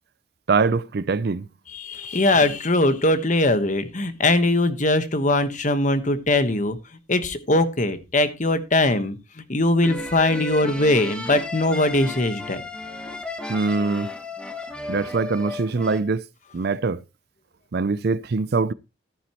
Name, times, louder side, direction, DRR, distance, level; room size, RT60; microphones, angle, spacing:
voice 1, 0.5-1.5 13.5-14.1 14.9-16.2 16.5-17.0 17.7-18.7, right 4 dB, 55° right, 0.5 m, -23 dB
voice 2, 1.7-6.8 7.1-9.2 9.5-12.6, left 2 dB, 40° left, 1.2 m, -21 dB
sound 1, 9.8-16.0, left 2 dB, 5° left, 1.2 m, -34 dB
14.0 x 9.4 x 2.9 m
head